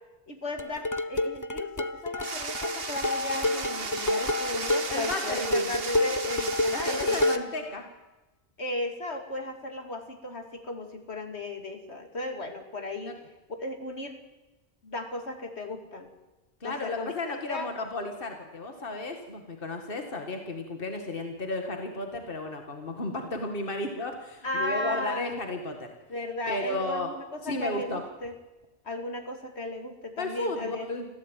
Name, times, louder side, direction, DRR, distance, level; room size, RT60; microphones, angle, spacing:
voice 1, 0.3-7.4 8.6-13.1 13.5-14.2 14.8-16.1 16.6-17.7 24.4-25.4 26.1-28.3 28.8-30.9, left 2 dB, 80° left, 5 dB, 3.0 m, -35 dB
sound 1, 0.6-7.6, left 1 dB, 20° left, 0.8 m, -29 dB
sound 2, 2.2-7.4, right 4 dB, 60° right, 1.6 m, -35 dB
voice 2, 4.9-5.7 6.7-7.8 13.1-13.2 16.6-25.9 26.5-27.1 27.4-28.0 30.2-31.1, left 2 dB, 55° left, 4 dB, 2.2 m, -33 dB
26.0 x 15.5 x 9.3 m, 1.1 s
omnidirectional pair, 1.1 m